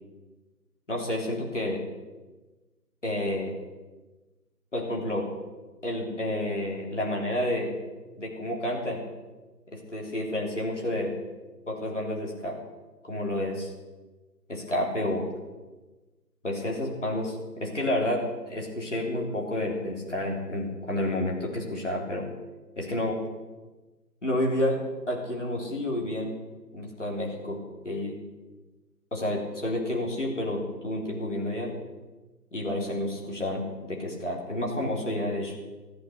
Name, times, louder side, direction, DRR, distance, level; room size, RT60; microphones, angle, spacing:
voice 1, 0.9-1.8 3.0-3.5 4.7-5.3 5.8-7.7 8.2-9.0 9.7-11.1 11.7-12.6 13.0-13.7 14.5-15.3 16.4-22.3 22.8-23.2 24.2-24.8 25.1-26.4 26.7-28.1 29.1-31.7 32.5-35.5, left 1 dB, 45° left, -2 dB, 3.5 m, -30 dB
13.5 x 11.5 x 6.8 m, 1.2 s
figure-of-eight pair, 170°, 49 cm